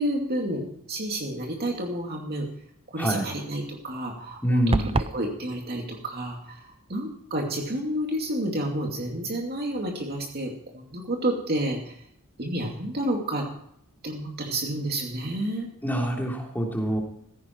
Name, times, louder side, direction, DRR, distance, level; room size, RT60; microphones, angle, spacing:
voice 1, 0.0-2.5 2.9-4.7 5.1-12.0 12.4-13.4 14.0-15.7, right 1 dB, 45° right, 0 dB, 2.6 m, -30 dB
voice 2, 4.4-4.9 15.8-17.0, right 1 dB, 10° left, 0 dB, 3.1 m, -25 dB
sound 1, 4.7-5.2, right 2 dB, 25° right, 0.6 m, -24 dB
16.0 x 15.0 x 4.6 m, 0.71 s
head